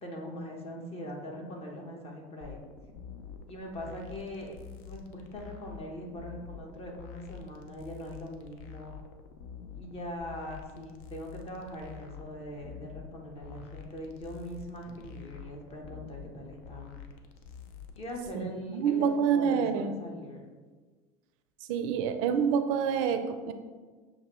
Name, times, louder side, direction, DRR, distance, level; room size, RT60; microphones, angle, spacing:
voice 1, 0.0-2.6 3.5-4.6 4.8-8.9 9.7-17.0 18.0-20.5, equal, 35° left, 1 dB, 1.0 m, -41 dB
sound 1, 2.4-18.3, left 6 dB, 65° left, 0.5 m, -47 dB
voice 2, 18.3-20.0 21.7-23.5, right 7 dB, 65° right, 8 dB, 0.4 m, -27 dB
6.8 x 2.5 x 3.0 m, 1.4 s
hypercardioid pair, 90°, 18 cm